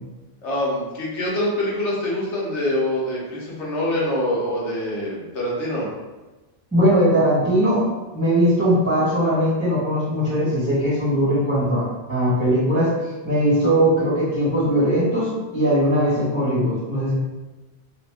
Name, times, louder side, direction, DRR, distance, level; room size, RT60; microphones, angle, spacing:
voice 1, 0.4-5.9, left 1 dB, 90° left, -5 dB, 1.2 m, -25 dB
voice 2, 6.7-7.8 8.1-12.9 13.2-17.1, equal, 15° right, -11 dB, 1.4 m, -20 dB
2.8 x 2.5 x 3.5 m, 1.1 s
omnidirectional pair, 1.2 m